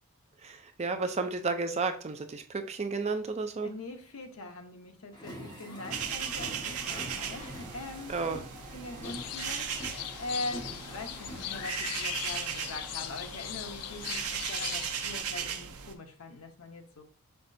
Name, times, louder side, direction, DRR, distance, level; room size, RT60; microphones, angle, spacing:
voice 1, 0.4-3.7 8.1-8.4, right 4 dB, 30° right, 7 dB, 0.4 m, -32 dB
voice 2, 3.6-8.1 8.7-9.7 10.2-17.0, left 2 dB, 70° left, 5 dB, 0.8 m, -42 dB
sound 1, 5.1-11.8, equal, 20° left, 1.2 m, -45 dB
sound 2, 5.9-15.9, right 7 dB, 80° right, 0.6 m, -37 dB
sound 3, 9.0-15.2, left 12 dB, 90° left, 0.3 m, -39 dB
5.7 x 3.2 x 2.6 m, 0.41 s
head